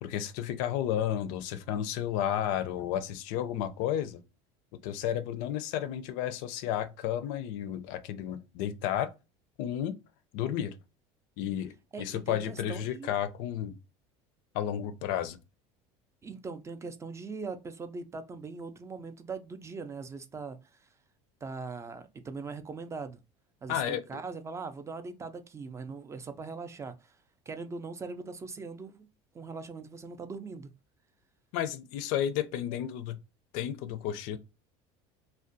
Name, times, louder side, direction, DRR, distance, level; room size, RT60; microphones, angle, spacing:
voice 1, 0.0-4.2 4.8-9.1 9.6-10.0 10.3-10.8 11.4-13.8 14.5-15.4 23.7-24.2 31.5-33.2 33.5-34.4, left 10 dB, 70° left, 0.4 m, -32 dB
voice 2, 11.9-13.1 16.2-20.9 21.4-23.2 23.6-27.2 27.5-29.1 29.3-30.7, right 4 dB, 20° right, 0.3 m, -41 dB
2.4 x 2.1 x 2.6 m
supercardioid pair, 115°, 15 cm